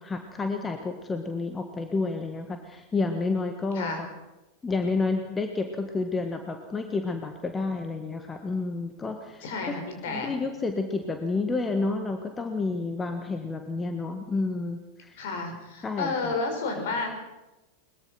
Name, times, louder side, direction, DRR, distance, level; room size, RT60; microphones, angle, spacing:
voice 1, 0.0-4.1 4.6-9.4 10.1-15.2 15.8-16.3, left 3 dB, 15° left, 6 dB, 1.7 m, -30 dB
voice 2, 9.4-10.3 15.1-17.1, left 3 dB, 55° left, 4 dB, 5.8 m, -31 dB
22.0 x 21.5 x 5.9 m, 1.0 s
figure-of-eight pair, 90°, 0 cm